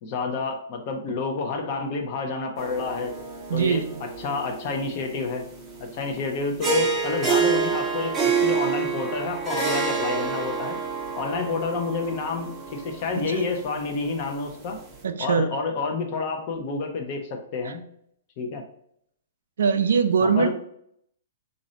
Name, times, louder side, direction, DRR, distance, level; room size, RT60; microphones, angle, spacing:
voice 1, 0.0-3.1 3.5-5.4 5.8-10.8 11.2-14.8 15.2-17.8 18.4-18.6 20.2-20.5, left 4 dB, 40° left, 3 dB, 0.7 m, -29 dB
sound 1, 2.6-15.0, right 5 dB, 15° right, 0.6 m, -28 dB
voice 2, 3.5-4.0 13.1-13.4 15.0-15.5 17.6-17.7 19.6-20.5, right 6 dB, 85° right, 8 dB, 0.4 m, -22 dB
3.1 x 2.6 x 3.9 m, 0.69 s
hypercardioid pair, 155°, 0 cm